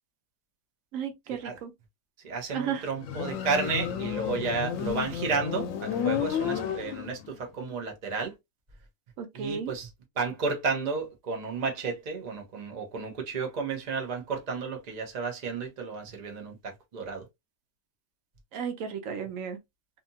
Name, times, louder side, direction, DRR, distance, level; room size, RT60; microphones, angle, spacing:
voice 1, 0.9-1.7 2.5-2.9 9.2-9.7 18.5-19.6, right 7 dB, 80° right, 1.0 m, -34 dB
voice 2, 2.2-8.3 9.3-9.9 10.2-17.2, right 4 dB, 40° right, 0.8 m, -32 dB
Motorcycle, 3.0-7.4, left 9 dB, 80° left, 0.9 m, -31 dB
2.7 x 2.4 x 2.6 m
omnidirectional pair, 1.4 m